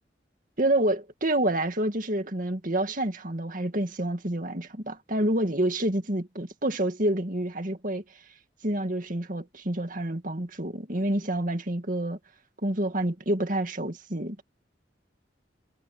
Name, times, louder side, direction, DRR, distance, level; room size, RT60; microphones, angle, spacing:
voice 1, 0.6-8.0 8.6-12.2 12.6-14.4, right 1 dB, 45° right, 2.2 m, -28 dB
head